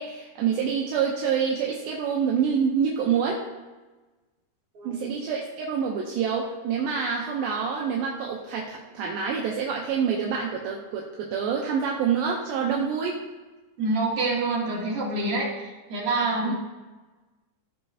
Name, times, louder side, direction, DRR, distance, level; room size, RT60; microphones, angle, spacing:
voice 1, 0.0-3.4 4.8-13.2 16.4-16.5, right 6 dB, 75° right, -1 dB, 2.5 m, -27 dB
voice 2, 13.8-16.5, right 2 dB, 40° right, -6 dB, 3.2 m, -26 dB
16.0 x 5.6 x 2.8 m, 1.2 s
omnidirectional pair, 4.4 m